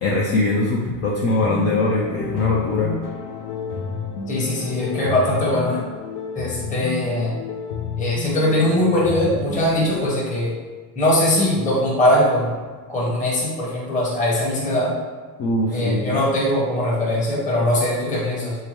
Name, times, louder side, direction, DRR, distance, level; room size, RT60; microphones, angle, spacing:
voice 1, 0.0-2.9 15.4-16.0, left 2 dB, 35° left, -4 dB, 0.4 m, -21 dB
sound 1, 1.4-10.1, left 5 dB, 80° left, 0.6 m, -31 dB
voice 2, 4.3-5.8 6.3-7.3 8.0-10.5 11.0-12.5 12.9-14.9 15.7-18.6, left 1 dB, 15° left, -5 dB, 0.9 m, -21 dB
3.3 x 2.8 x 3.1 m, 1.5 s
supercardioid pair, 125°, 48 cm